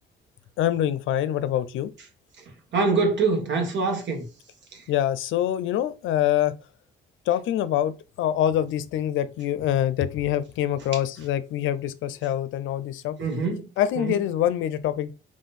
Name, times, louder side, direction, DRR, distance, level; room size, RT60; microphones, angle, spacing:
voice 1, 0.6-1.9 4.9-6.5 7.3-13.2 13.8-15.1, left 11 dB, 80° left, 0.5 m, -25 dB
voice 2, 2.7-4.2 13.2-13.7 14.0-14.2, right 4 dB, 65° right, 1.6 m, -24 dB
3.7 x 3.1 x 4.2 m
cardioid pair, 90°, 20 cm